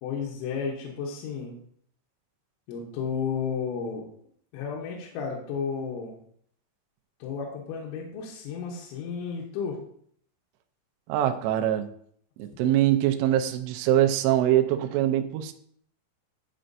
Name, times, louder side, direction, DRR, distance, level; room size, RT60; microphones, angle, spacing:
voice 1, 0.0-1.5 2.7-4.1 4.5-6.2 7.2-9.8, left 6 dB, 80° left, -3 dB, 3.2 m, -32 dB
voice 2, 11.1-11.9 12.4-15.5, right 12 dB, 85° right, 6 dB, 2.5 m, -23 dB
11.5 x 4.3 x 2.6 m, 0.63 s
omnidirectional pair, 5.6 m